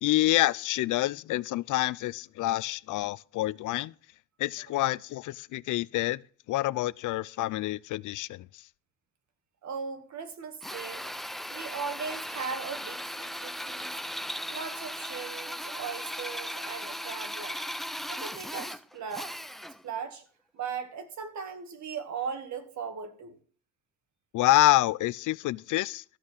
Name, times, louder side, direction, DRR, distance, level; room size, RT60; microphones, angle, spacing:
voice 1, 0.0-3.9 4.4-6.2 6.5-8.6 24.3-26.0, left 16 dB, 70° left, 0.5 m, -27 dB
voice 2, 9.6-11.1 11.5-13.9 14.5-17.6 18.1-19.3 19.8-20.2 20.5-23.4, right 6 dB, 60° right, 2.2 m, -38 dB
Drill, 10.6-19.9, equal, ahead, 0.5 m, -37 dB
13.5 x 6.4 x 7.2 m
cardioid pair, 95°, 32 cm